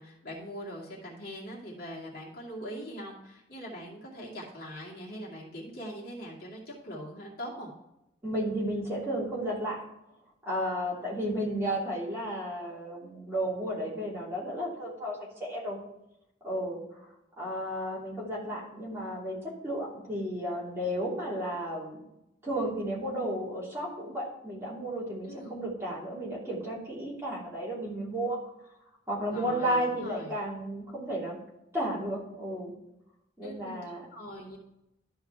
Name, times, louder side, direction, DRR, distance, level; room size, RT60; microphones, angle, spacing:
voice 1, 0.0-7.7 25.2-25.6 29.3-30.3 33.4-33.8 34.1-34.6, equal, 50° left, -4 dB, 2.4 m, -42 dB
voice 2, 8.2-9.8 10.4-15.8 16.4-17.0 17.4-22.0 22.4-28.4 29.1-31.4 31.7-32.7 33.4-34.1, equal, 15° right, -6 dB, 2.8 m, -33 dB
12.5 x 4.7 x 4.6 m, 0.86 s
head